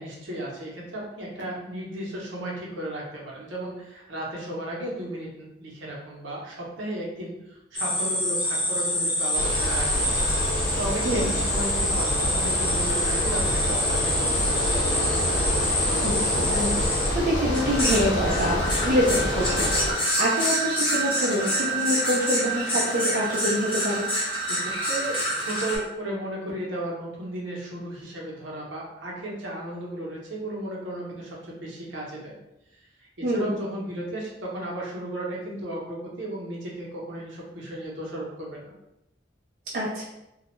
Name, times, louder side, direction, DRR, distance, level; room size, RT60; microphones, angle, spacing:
voice 1, 0.0-10.2 10.8-14.9 24.5-25.2 25.4-32.3 33.0-38.7, right 1 dB, 80° right, -3 dB, 0.7 m, -34 dB
sound 1, 7.7-25.8, equal, 25° left, 0.8 m, -27 dB
Bicycle, 9.3-19.9, equal, 75° left, 0.9 m, -27 dB
voice 2, 16.0-24.1 33.2-33.6 39.7-40.0, equal, 50° right, -5 dB, 0.4 m, -26 dB
2.3 x 2.1 x 2.9 m, 0.88 s
head